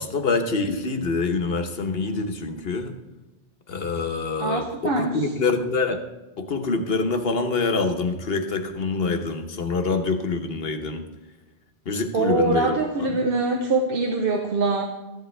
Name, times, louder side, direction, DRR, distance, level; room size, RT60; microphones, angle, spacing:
voice 1, 0.0-2.9 3.7-6.0 6.4-11.0 11.9-13.1, left 4 dB, 70° left, 6 dB, 1.3 m, -25 dB
voice 2, 4.4-5.3 12.1-14.8, right 3 dB, 65° right, 2 dB, 1.2 m, -23 dB
14.0 x 10.5 x 3.3 m, 1.1 s
omnidirectional pair, 1.0 m